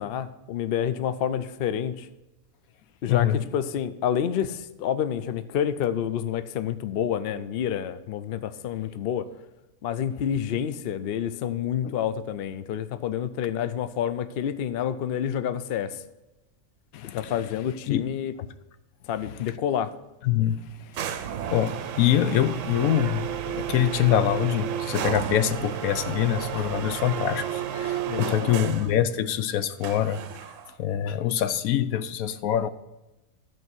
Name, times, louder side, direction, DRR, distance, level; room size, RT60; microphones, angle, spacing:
voice 1, 0.0-2.1 3.0-9.3 9.8-16.0 17.1-18.3 19.1-19.9 28.1-28.6, left 9 dB, 60° left, 12 dB, 0.6 m, -28 dB
voice 2, 3.1-3.4 16.9-17.3 17.9-18.0 19.3-19.4 20.2-30.2 30.8-32.7, left 11 dB, 75° left, 12 dB, 1.0 m, -25 dB
sound 1, 20.9-29.0 29.8-30.7, right 9 dB, 70° right, 0.9 m, -32 dB
13.5 x 4.6 x 6.1 m, 1.0 s
omnidirectional pair, 1.5 m